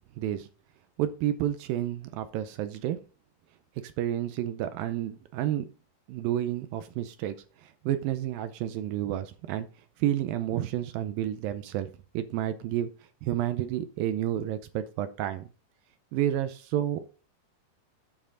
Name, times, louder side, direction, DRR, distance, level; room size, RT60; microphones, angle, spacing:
voice 1, 0.2-0.5 1.0-3.0 3.8-5.7 6.1-9.7 10.0-11.9 12.1-12.9 13.2-15.5 16.1-17.0, right 12 dB, 80° right, 11 dB, 2.1 m, -30 dB
8.9 x 7.3 x 3.8 m, 0.36 s
omnidirectional pair, 4.7 m